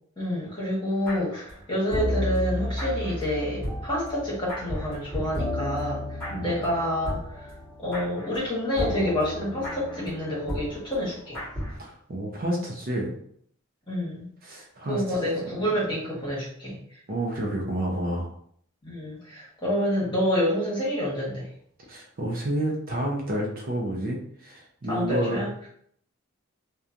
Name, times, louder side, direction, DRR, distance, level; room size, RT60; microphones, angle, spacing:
voice 1, 0.2-7.5 7.8-11.4 13.9-14.3 14.9-16.8 18.8-21.5 24.9-25.7, equal, 25° left, -7 dB, 1.2 m, -28 dB
sound 1, 1.0-1.6 1.9-11.8, left 1 dB, 5° left, 1.3 m, -33 dB
voice 2, 11.8-13.2 14.4-15.2 17.1-18.3 21.9-25.5, right 1 dB, 45° right, 0 dB, 0.5 m, -30 dB
2.9 x 2.2 x 2.5 m, 0.64 s
head